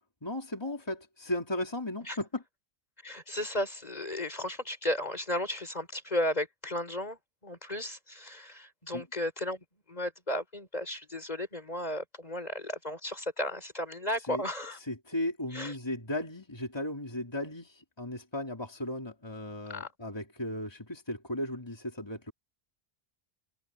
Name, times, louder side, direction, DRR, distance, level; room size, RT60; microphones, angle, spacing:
voice 1, 0.2-2.4 8.9-9.0 14.3-14.4 14.8-22.3, left 1 dB, 25° left, 3.1 m, -36 dB
voice 2, 3.0-7.2 7.4-9.6 9.9-14.8 15.5-15.8 19.7-19.9, left 1 dB, 40° left, 4.4 m, -34 dB
omnidirectional pair, 1.1 m